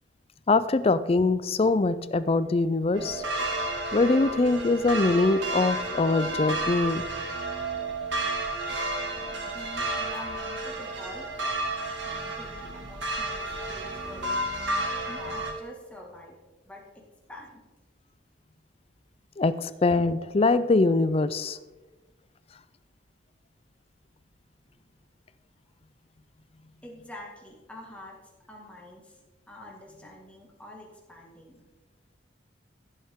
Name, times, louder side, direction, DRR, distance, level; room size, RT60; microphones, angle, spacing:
voice 1, 0.5-3.2 3.9-7.0 19.4-21.6, left 3 dB, 30° left, 14 dB, 0.4 m, -23 dB
sound 1, 2.9-15.5, right 2 dB, 75° right, 2.0 m, -31 dB
voice 2, 9.2-11.3 12.1-14.4 15.1-16.3 16.6-17.0 17.3-17.6 24.7-24.8 26.8-29.2 29.5-31.6, left 1 dB, 5° left, -2 dB, 1.9 m, -46 dB
15.5 x 7.2 x 3.7 m, 1.2 s
head